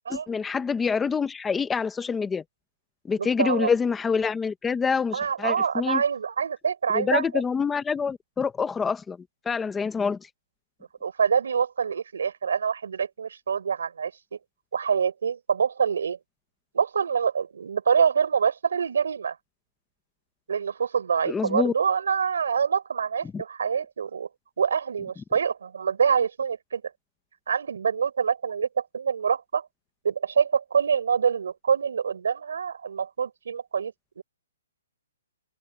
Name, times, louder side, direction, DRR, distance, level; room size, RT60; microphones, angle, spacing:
voice 1, 0.1-2.4 3.1-6.0 6.9-9.2 9.5-10.2 21.3-21.7 23.3-23.4, left 5 dB, 5° left, 0.8 m, -26 dB
voice 2, 3.2-3.7 5.1-7.3 11.0-14.1 14.7-16.2 16.7-19.4 20.5-24.3 24.6-26.8 27.5-29.7 30.0-34.2, right 6 dB, 70° right, 4.5 m, -25 dB
hypercardioid pair, 180°, 0 cm